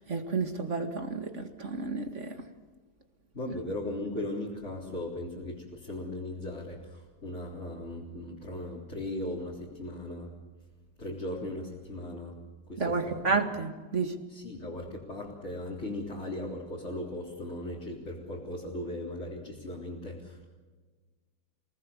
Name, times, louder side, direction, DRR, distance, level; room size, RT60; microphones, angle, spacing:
voice 1, 0.0-2.4 12.8-14.2, right 4 dB, 35° right, 6 dB, 2.1 m, -31 dB
voice 2, 3.3-10.3 11.0-12.4 12.7-13.2 14.3-20.5, left 1 dB, 30° left, -4 dB, 4.2 m, -38 dB
29.0 x 19.0 x 7.3 m, 1.3 s
omnidirectional pair, 2.3 m